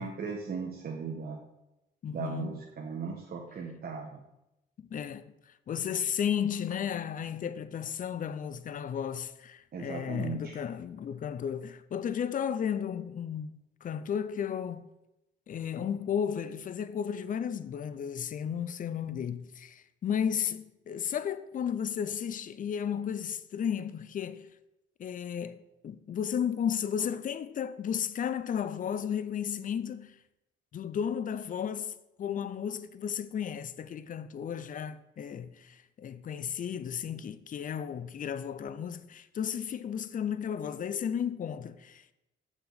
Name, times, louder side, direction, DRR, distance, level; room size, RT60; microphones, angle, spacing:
voice 1, 0.0-1.4 2.1-4.2 9.7-10.6, right 5 dB, 50° right, 1.2 m, -37 dB
voice 2, 2.0-2.5 4.8-5.3 5.7-14.9 15.5-24.5 25.0-30.2 30.7-42.1, left 8 dB, 45° left, 0.5 m, -34 dB
7.0 x 6.9 x 4.0 m
cardioid pair, 90°, 20 cm